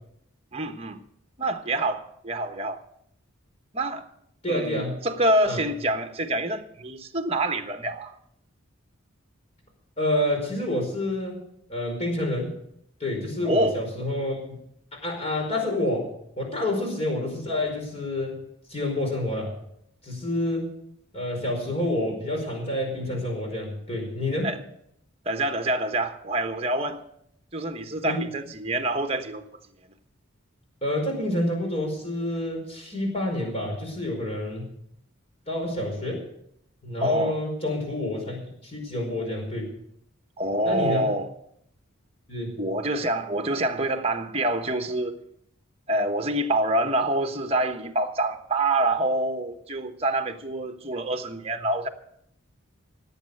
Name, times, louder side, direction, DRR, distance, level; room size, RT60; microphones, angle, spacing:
voice 1, 0.5-1.0 1.4-2.8 3.7-4.0 4.5-8.1 13.4-13.8 24.4-24.6 25.2-27.0 27.5-29.4 37.0-37.4 40.4-41.3 42.6-45.2 45.9-51.9, right 1 dB, 30° right, 1.2 m, -26 dB
voice 2, 4.4-5.0 5.5-5.6 10.0-11.4 11.7-12.5 13.0-14.4 14.9-16.1 16.4-18.4 18.7-19.5 20.0-20.7 21.1-24.5 28.0-28.3 30.8-34.7 35.5-36.3 36.8-39.7 40.6-41.1 42.3-42.6, left 1 dB, 30° left, 5.0 m, -28 dB
17.5 x 8.7 x 6.7 m
head